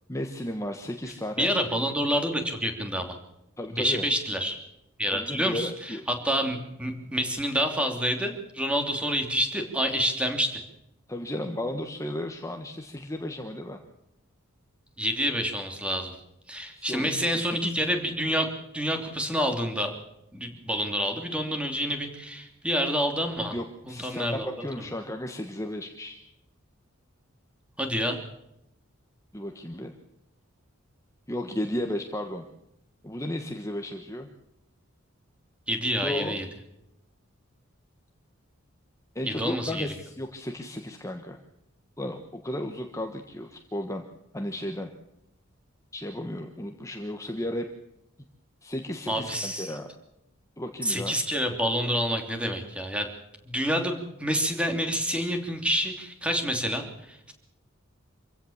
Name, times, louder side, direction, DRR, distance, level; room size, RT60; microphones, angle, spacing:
voice 1, 0.1-1.5 3.6-4.0 5.1-6.0 11.1-13.8 16.7-17.7 23.5-26.2 29.3-29.9 31.3-32.4 33.0-34.3 36.0-36.4 39.1-41.4 42.0-44.0 44.3-44.9 45.9-47.7 48.6-49.9 50.6-51.1, left 1 dB, 15° left, 4 dB, 1.4 m, -34 dB
voice 2, 1.4-3.1 3.7-4.6 5.0-10.6 15.0-16.1 16.5-18.5 18.7-19.9 20.3-23.5 23.8-24.5 27.8-28.2 35.7-36.4 39.3-39.9 49.1-49.8 50.8-53.1 53.4-57.3, equal, 5° right, 4 dB, 3.0 m, -28 dB
26.0 x 16.0 x 7.3 m, 0.86 s
head